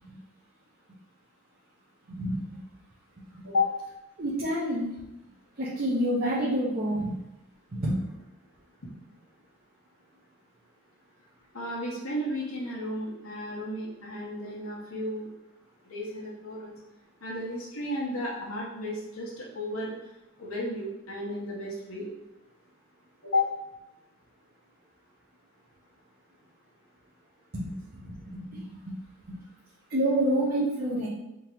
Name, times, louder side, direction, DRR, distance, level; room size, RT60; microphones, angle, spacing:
voice 1, 2.1-2.4 3.3-3.4 4.2-4.9 5.6-7.2 7.7-8.1 27.5-28.6 29.3-29.4 29.9-31.1, right 1 dB, 45° right, -8 dB, 0.8 m, -28 dB
voice 2, 11.5-15.3 15.8-16.7 17.2-19.9 20.4-22.1 23.2-23.5, left 2 dB, 80° left, -6 dB, 1.2 m, -32 dB
3.7 x 2.9 x 4.5 m, 0.93 s
head